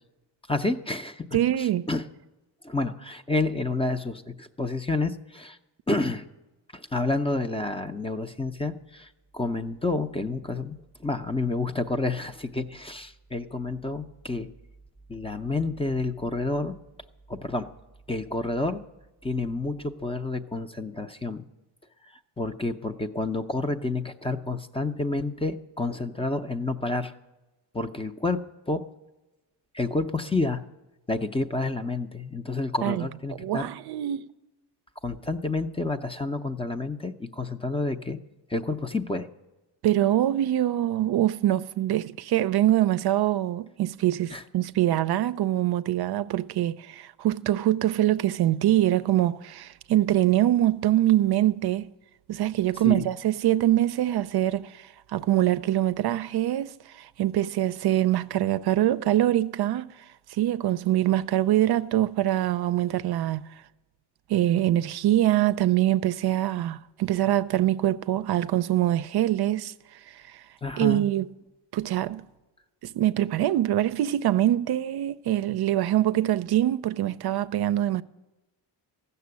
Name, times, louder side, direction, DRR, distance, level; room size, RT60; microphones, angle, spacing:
voice 1, 0.5-1.3 1.6-2.0 2.6-5.6 5.9-6.3 6.7-10.8 11.0-14.5 15.1-16.7 17.3-17.7 18.1-18.8 19.2-21.4 22.4-27.1 27.7-28.4 28.7-28.8 29.7-30.6 31.1-33.7 35.0-38.2 38.5-39.3 44.3-44.4 52.8-53.1 70.6-71.0, left 3 dB, 15° left, 0.6 m, -29 dB
voice 2, 1.3-1.9 32.8-33.1 33.4-34.3 39.8-51.9 52.3-59.9 60.3-63.4 64.3-69.7 70.1-70.4 70.8-71.3 71.7-72.3 72.8-78.0, right 13 dB, 60° right, 0.5 m, -24 dB
14.5 x 6.8 x 9.5 m
cardioid pair, 115°, 43 cm